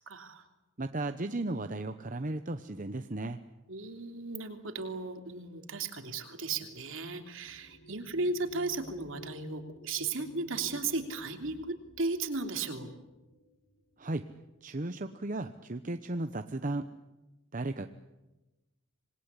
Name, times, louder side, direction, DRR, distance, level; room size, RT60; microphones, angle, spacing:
voice 1, 0.1-0.4 3.7-12.9, right 3 dB, 60° right, 5 dB, 3.1 m, -35 dB
voice 2, 0.8-3.4 14.0-14.3 14.6-16.9 17.5-17.9, right 2 dB, 35° right, 8 dB, 0.9 m, -35 dB
sound 1, 5.0-14.0 14.9-15.0 15.4-15.9, equal, 60° left, 6.2 m, -53 dB
27.0 x 20.5 x 9.9 m, 1.1 s
head